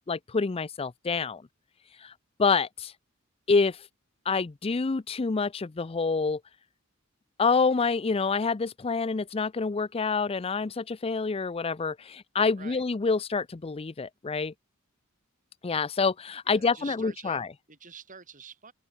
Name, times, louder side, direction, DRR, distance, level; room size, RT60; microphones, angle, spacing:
voice 1, 0.0-1.4 2.0-2.1 2.4-2.9 3.5-3.8 4.3-6.4 7.4-14.5 15.6-17.5, left 4 dB, 30° left, 0.5 m, -27 dB
voice 2, 16.5-18.7, right 6 dB, 40° right, 6.4 m, -47 dB
open air
head